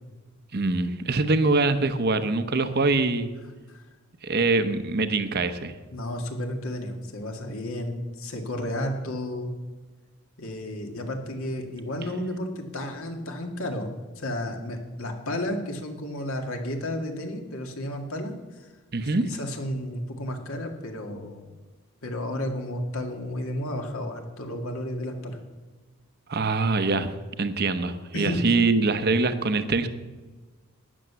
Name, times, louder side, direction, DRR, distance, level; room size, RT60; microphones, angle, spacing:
voice 1, 0.5-3.3 4.2-5.7 18.9-19.3 26.3-27.1 27.4-29.9, right 3 dB, 45° right, 10 dB, 0.9 m, -24 dB
voice 2, 5.9-9.6 10.4-13.9 14.2-18.7 19.2-21.5 22.0-25.4 28.1-28.6, left 1 dB, 70° left, 3 dB, 2.1 m, -32 dB
12.5 x 10.0 x 6.9 m, 1.3 s
head